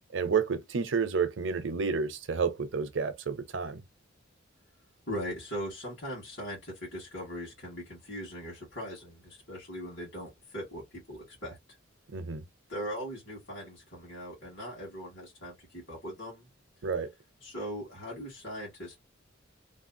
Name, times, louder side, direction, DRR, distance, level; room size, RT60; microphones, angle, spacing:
voice 1, 0.1-3.8 12.1-12.5 16.8-17.1, right 5 dB, 65° right, 0.6 m, -30 dB
voice 2, 5.1-11.6 12.7-16.5 17.4-19.0, equal, 60° left, 1.8 m, -40 dB
3.2 x 2.4 x 2.7 m
head